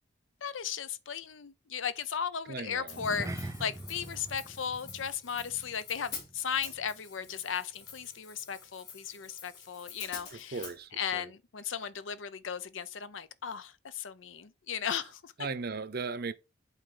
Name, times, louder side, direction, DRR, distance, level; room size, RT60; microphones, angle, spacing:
voice 1, 0.4-10.6 11.0-15.3, left 7 dB, 85° left, 0.6 m, -36 dB
voice 2, 2.5-3.0 10.3-11.3 15.4-16.3, right 4 dB, 55° right, 0.7 m, -37 dB
Hi-hat, 2.9-10.8, left 6 dB, 60° left, 3.5 m, -47 dB
sound 1, 2.9-7.5 7.8-8.1 8.5-8.6, right 1 dB, 15° right, 0.6 m, -44 dB
8.2 x 4.1 x 3.8 m
head